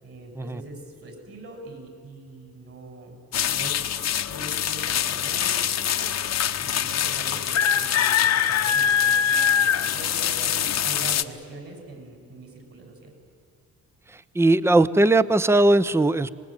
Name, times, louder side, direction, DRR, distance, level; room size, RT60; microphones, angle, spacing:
voice 1, 0.0-3.2 3.5-3.8 4.2-6.1 6.6-13.1, right 2 dB, 50° right, 4 dB, 7.2 m, -42 dB
sound 1, 3.3-11.2, left 9 dB, 60° left, 1.1 m, -23 dB
voice 2, 14.1-16.3, right 2 dB, 10° right, 15 dB, 0.7 m, -19 dB
25.5 x 20.5 x 9.1 m, 2.3 s
cardioid pair, 90°, 30 cm